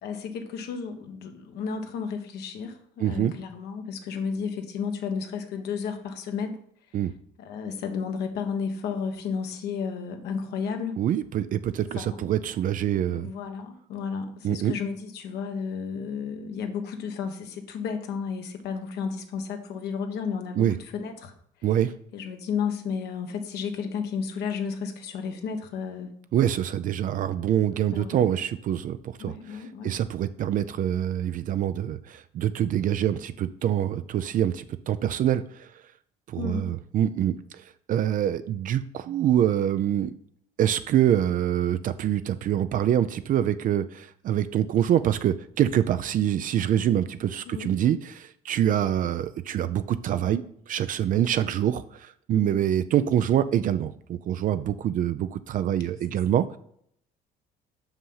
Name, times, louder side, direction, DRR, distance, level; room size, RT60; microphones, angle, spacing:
voice 1, 0.0-6.6 7.4-11.0 11.9-12.2 13.1-21.3 22.1-26.1 27.8-28.3 29.2-29.9 36.3-36.7 47.4-48.0 51.1-51.3 52.4-52.6, left 6 dB, 75° left, 5 dB, 1.3 m, -33 dB
voice 2, 3.0-3.3 6.9-7.1 11.0-13.3 14.4-14.7 20.6-20.8 21.6-21.9 26.3-35.7 36.3-40.1 40.6-56.6, right 10 dB, 55° right, 12 dB, 0.4 m, -25 dB
5.8 x 5.7 x 5.5 m, 0.67 s
cardioid pair, 110°, 17 cm